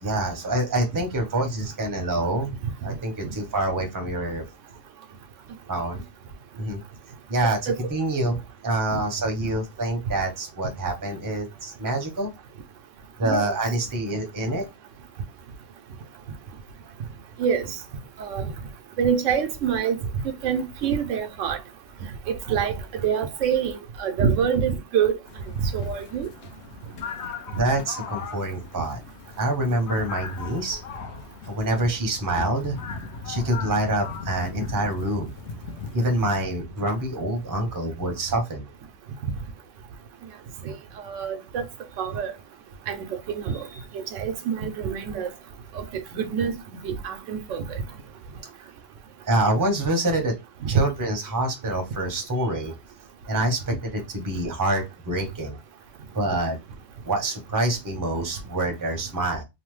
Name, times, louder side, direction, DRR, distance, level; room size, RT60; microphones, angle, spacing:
voice 1, 0.0-2.5 2.8-4.4 5.7-6.0 6.6-6.8 7.3-8.4 8.6-12.3 13.2-14.6 27.6-29.0 29.4-30.8 31.5-32.8 33.3-35.3 35.9-38.6 48.6-48.7 49.2-50.3 50.7-52.7 53.3-55.6 56.1-56.6 57.0-59.4, right 1 dB, 20° right, 0.6 m, -26 dB
voice 2, 13.2-13.5 17.4-17.7 18.2-18.5 19.0-20.0 20.2-21.6 22.3-22.7 23.0-25.2 25.6-26.3 40.7-40.8 41.0-41.6 42.0-42.3 42.9-43.7 43.9-45.3 45.8-46.5 46.8-47.8, right 7 dB, 85° right, 0.9 m, -26 dB
sound 1, 25.3-36.4, left 5 dB, 70° left, 0.9 m, -38 dB
2.9 x 2.0 x 3.1 m
omnidirectional pair, 1.3 m